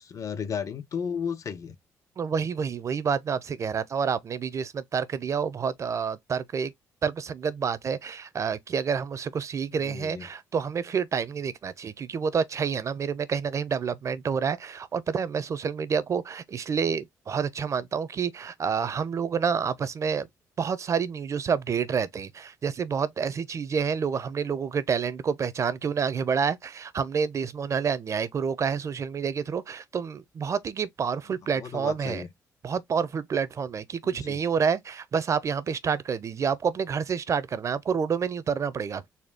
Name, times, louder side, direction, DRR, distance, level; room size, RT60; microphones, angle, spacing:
voice 1, 0.0-1.8 9.7-10.3 31.5-32.3 34.0-34.4, left 7 dB, 55° left, 0.9 m, -34 dB
voice 2, 2.2-6.7 7.0-20.3 20.6-32.2 32.6-39.1, right 6 dB, 50° right, 0.7 m, -28 dB
4.2 x 2.3 x 3.5 m
supercardioid pair, 65°, 7 cm